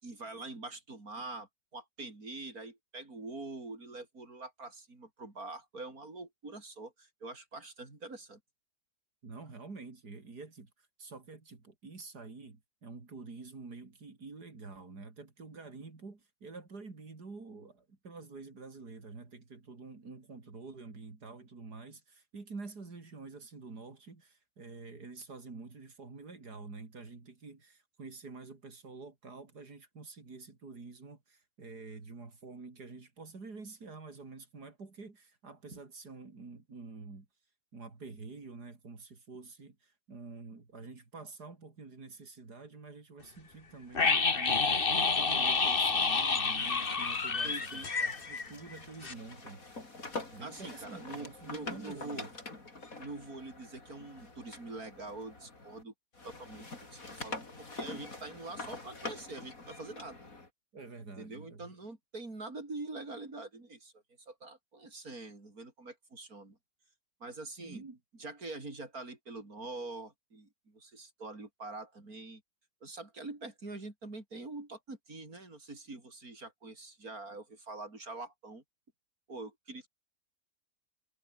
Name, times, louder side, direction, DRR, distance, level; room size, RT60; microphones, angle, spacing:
voice 1, 0.0-8.4 35.7-35.8 47.4-47.9 50.4-52.3 53.0-55.9 56.2-60.3 61.2-66.6 67.2-67.8 68.2-72.4 72.8-78.6 79.3-79.9, right 2 dB, 65° right, 5.7 m, -45 dB
voice 2, 9.2-37.3 37.7-49.6 50.3-52.3 60.7-61.7 67.6-68.0, right 4 dB, 90° right, 4.1 m, -48 dB
sound 1, 44.0-48.8 49.0-49.1, left 4 dB, 35° left, 1.8 m, -29 dB
sound 2, 45.3-55.8 56.1-60.5, left 3 dB, 60° left, 4.8 m, -46 dB
omnidirectional pair, 1.7 m